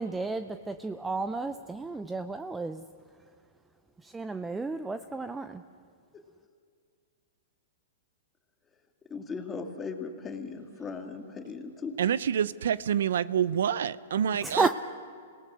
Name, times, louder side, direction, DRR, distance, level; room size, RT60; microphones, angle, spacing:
voice 1, 0.0-2.8 4.0-5.6 14.4-14.7, right 3 dB, 10° right, 10 dB, 0.7 m, -32 dB
voice 2, 9.1-12.0, left 4 dB, 20° left, 4 dB, 2.3 m, -38 dB
voice 3, 12.0-14.7, right 9 dB, 75° right, 18 dB, 0.6 m, -27 dB
26.5 x 18.5 x 6.3 m, 2.2 s
hypercardioid pair, 125°, 0 cm